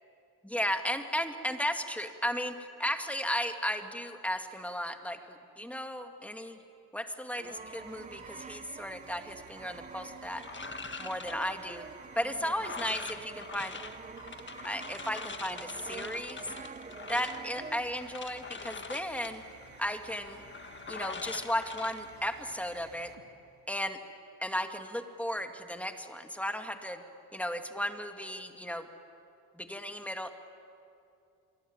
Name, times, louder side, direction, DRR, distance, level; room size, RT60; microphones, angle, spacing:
voice 1, 0.4-6.6 6.9-10.4 11.0-11.8 12.2-13.8 14.6-16.4 17.1-19.4 19.8-20.4 20.9-23.1 23.7-24.0 24.4-27.0 27.3-28.9 29.6-30.3, equal, 5° left, 6 dB, 2.2 m, -35 dB
Brass instrument, 7.3-18.1, right 4 dB, 20° right, 0.8 m, -47 dB
sound 1, 7.3-23.8, right 6 dB, 45° right, 2.4 m, -54 dB
sound 2, 10.4-22.7, left 5 dB, 30° left, 1.6 m, -44 dB
26.5 x 23.5 x 8.9 m, 2.6 s
cardioid pair, 90°, 39 cm